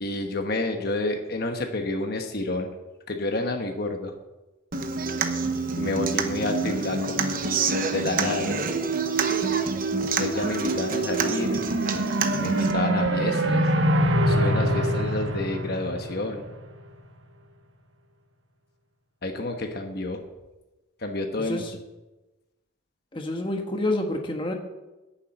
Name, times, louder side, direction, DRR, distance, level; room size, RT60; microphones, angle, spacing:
voice 1, 0.0-2.7 3.1-4.1 5.8-7.1 7.9-8.6 10.2-11.6 12.4-13.7 14.3-16.4 19.2-20.2 21.0-21.6, left 2 dB, 50° left, 4 dB, 1.1 m, -29 dB
Human voice / Acoustic guitar, 4.7-12.7, right 4 dB, 45° right, 0.9 m, -27 dB
sound 1, 11.1-16.6, right 1 dB, 60° right, 1.3 m, -24 dB
voice 2, 23.1-24.5, left 1 dB, 25° left, 3 dB, 1.3 m, -28 dB
10.0 x 7.3 x 8.9 m, 1.1 s
head